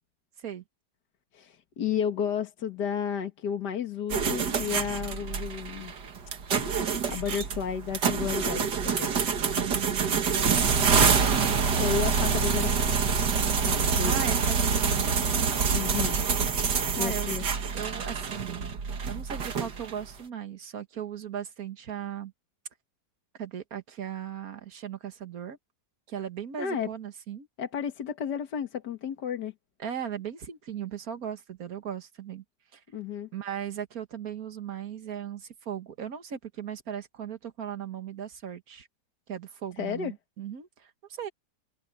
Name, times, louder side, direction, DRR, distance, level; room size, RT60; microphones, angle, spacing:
voice 1, 1.3-5.9 7.1-9.1 11.8-12.9 13.7-14.2 15.7-16.2 17.0-17.4 26.6-26.9 27.6-29.5 32.9-33.3 39.8-40.1, left 7 dB, 70° left, 2.1 m, -32 dB
sound 1, 4.1-20.0, right 5 dB, 75° right, 2.3 m, -26 dB
voice 2, 9.5-11.1 14.0-15.1 16.9-17.3 17.7-18.6 19.1-22.3 23.4-25.6 26.1-27.5 29.8-32.4 32.7-32.8 33.3-38.9 39.3-41.3, right 9 dB, 55° right, 2.0 m, -37 dB
omnidirectional pair, 1.8 m